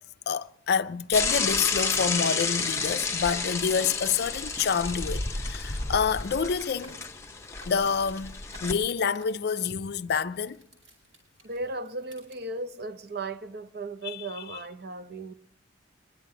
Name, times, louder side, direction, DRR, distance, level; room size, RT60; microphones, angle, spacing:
voice 1, 0.3-7.0 7.7-10.6 14.0-14.3, left 6 dB, 55° left, 0.4 m, -27 dB
Bicycle / Mechanisms, 1.1-8.7, left 4 dB, 15° left, 0.7 m, -31 dB
sound 1, 3.4-12.4, right 1 dB, 80° right, 5.4 m, -53 dB
voice 2, 11.4-15.3, right 2 dB, 50° right, 0.7 m, -36 dB
22.5 x 11.0 x 3.7 m
head